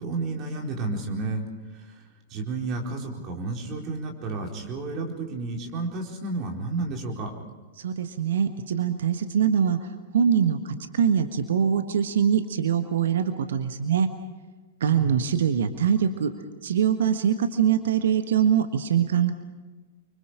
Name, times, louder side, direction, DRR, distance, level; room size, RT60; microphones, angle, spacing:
voice 1, 0.0-1.5 2.3-7.3 14.8-15.2, right 3 dB, 30° right, 1 dB, 4.4 m, -31 dB
voice 2, 7.8-9.8 10.1-14.1 14.8-16.3 16.6-19.3, right 8 dB, 60° right, 8 dB, 1.5 m, -23 dB
29.5 x 25.0 x 5.1 m, 1.2 s
figure-of-eight pair, 100°, 0 cm